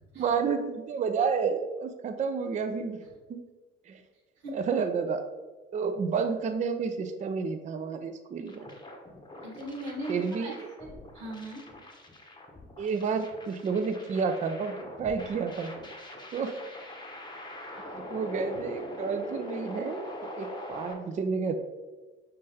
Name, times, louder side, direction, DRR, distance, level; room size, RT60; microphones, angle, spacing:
voice 1, 0.2-3.0 3.3-3.4 3.9-4.0 4.5-5.2 5.7-8.7 10.1-10.7 12.8-15.7 16.3-16.6 17.9-20.1 20.4-21.6, right 5 dB, 25° right, 8 dB, 0.4 m, -30 dB
sound 1, 8.5-20.9, left 1 dB, 15° left, 0.9 m, -43 dB
voice 2, 9.4-10.5 10.8-11.6, right 1 dB, 75° right, -1 dB, 1.1 m, -39 dB
5.2 x 3.6 x 2.8 m, 1.2 s
figure-of-eight pair, 50°, 33 cm